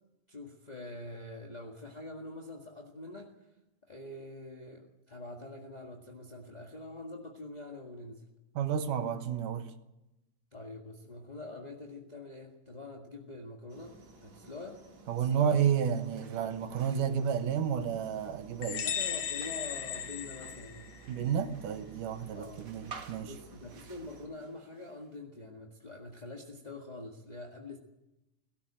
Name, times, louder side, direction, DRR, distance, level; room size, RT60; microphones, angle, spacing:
voice 1, 0.3-3.5 3.8-8.2 10.5-14.8 15.2-15.7 18.8-21.0 22.3-22.6 23.2-27.8, left 2 dB, 20° left, 1.3 m, -45 dB
voice 2, 8.6-9.7 15.1-18.9 21.1-23.3, right 8 dB, 90° right, 2.8 m, -31 dB
sound 1, 13.7-24.3, right 4 dB, 60° right, 4.0 m, -55 dB
sound 2, 15.7-25.2, right 5 dB, 40° right, 1.9 m, -54 dB
sound 3, 18.6-21.2, left 9 dB, 65° left, 2.2 m, -36 dB
17.5 x 17.5 x 8.7 m
omnidirectional pair, 3.6 m